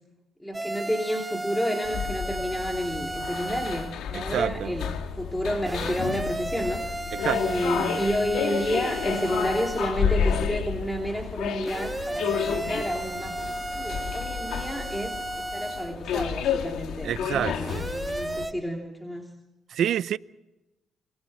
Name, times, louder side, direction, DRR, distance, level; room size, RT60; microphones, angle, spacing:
voice 1, 0.4-7.0 7.2-19.3, equal, 5° left, 3.0 m, -30 dB
sound 1, 0.5-3.9 5.6-9.9 11.6-15.9 17.6-18.5, right 1 dB, 15° right, 1.5 m, -34 dB
sound 2, 1.8-18.5, left 7 dB, 80° left, 1.9 m, -31 dB
voice 2, 4.1-4.8 7.1-7.6 17.0-17.9 19.7-20.2, right 10 dB, 70° right, 0.6 m, -28 dB
28.0 x 25.0 x 4.4 m
cardioid pair, 90°, 0 cm